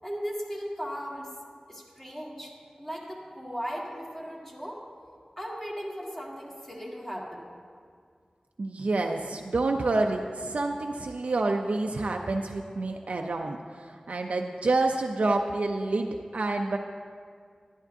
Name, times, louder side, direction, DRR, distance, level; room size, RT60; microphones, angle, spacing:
voice 1, 0.0-1.3 1.7-4.8 5.4-7.5, equal, 15° left, -3 dB, 1.7 m, -37 dB
voice 2, 8.6-16.8, right 2 dB, 75° right, 3 dB, 0.4 m, -28 dB
11.5 x 10.5 x 2.6 m, 2.1 s
wide cardioid pair, 65°, 2 cm